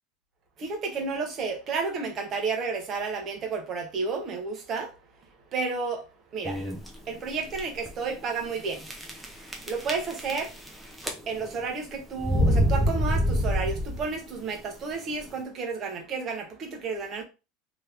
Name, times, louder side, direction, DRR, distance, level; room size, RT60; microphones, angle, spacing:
voice 1, 0.6-5.0 5.5-6.0 6.3-6.6 7.1-8.9 9.7-10.5 11.3-17.2, right 4 dB, 30° right, 0.9 m, -31 dB
sound 1, 6.4-6.9 7.5-7.6 7.9-8.0 8.9-9.3 9.5-10.7 11.0-11.5 12.2-14.1, equal, ahead, 0.6 m, -25 dB
2.9 x 2.7 x 3.4 m
supercardioid pair, 170°, 0 cm